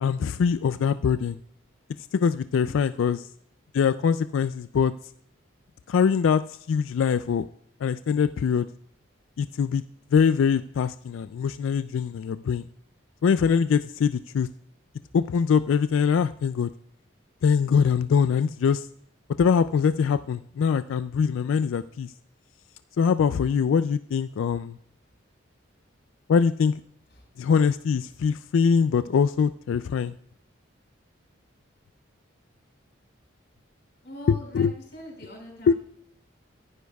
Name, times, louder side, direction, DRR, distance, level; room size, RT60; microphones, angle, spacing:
voice 1, 0.0-1.4 2.1-3.3 3.7-4.9 5.9-7.5 7.8-8.7 9.4-9.8 10.1-12.6 13.2-14.5 15.1-16.7 17.4-18.9 19.4-22.1 23.0-24.8 26.3-26.7 27.4-30.1 34.5-34.7 35.7-35.8, left 6 dB, 85° left, 13 dB, 0.3 m, -23 dB
voice 2, 2.6-3.2 27.1-27.2 34.0-35.8, left 1 dB, 55° left, 0 dB, 4.5 m, -43 dB
14.5 x 11.0 x 2.3 m, 0.69 s
head